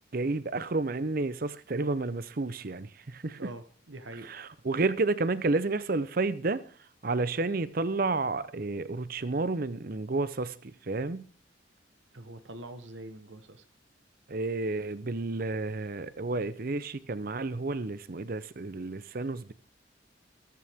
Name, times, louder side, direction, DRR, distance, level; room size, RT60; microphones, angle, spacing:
voice 1, 0.1-3.5 4.3-6.6 7.0-11.3 14.3-19.5, right 3 dB, 50° right, 0.7 m, -31 dB
voice 2, 3.4-4.3 12.1-13.6, right 1 dB, 85° right, 1.2 m, -44 dB
14.0 x 14.0 x 3.6 m
head